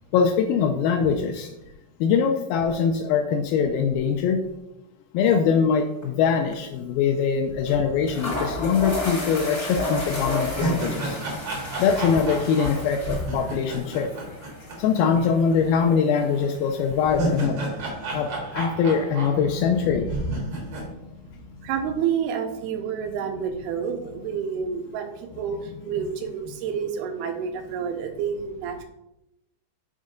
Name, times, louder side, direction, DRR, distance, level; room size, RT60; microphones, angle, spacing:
voice 1, 0.1-1.5 2.0-4.4 5.1-11.2 11.8-14.2 14.8-17.6 18.1-20.6, left 6 dB, 85° left, 5 dB, 2.2 m, -23 dB
sound 1, 6.0-6.3 6.5-6.6 7.7-7.8 8.1-17.4, left 2 dB, 50° left, 0.8 m, -33 dB
sound 2, 9.7-9.8 10.2-15.3 15.5-15.6 16.8-19.8 20.0-20.9, right 1 dB, 65° right, 1.1 m, -31 dB
voice 2, 21.6-28.8, right 7 dB, 85° right, 5 dB, 2.6 m, -29 dB
6.4 x 4.6 x 5.0 m, 0.91 s
omnidirectional pair, 4.7 m